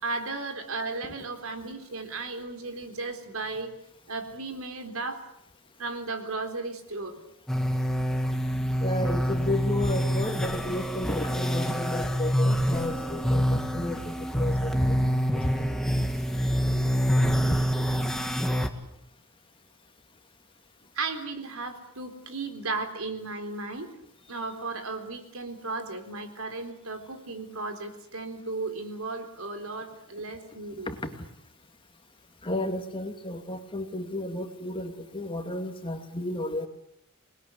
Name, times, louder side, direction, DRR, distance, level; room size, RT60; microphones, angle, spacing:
voice 1, 0.0-3.7 4.1-5.2 5.8-7.2 20.9-23.9 24.3-30.9, right 3 dB, 75° right, 6 dB, 3.9 m, -35 dB
sound 1, 7.5-18.7, equal, ahead, 2.0 m, -26 dB
voice 2, 8.8-15.0 15.3-15.7 17.5-17.6 30.9-31.2 32.4-36.7, left 1 dB, 25° left, 6 dB, 2.4 m, -32 dB
27.0 x 21.0 x 8.2 m, 0.77 s
head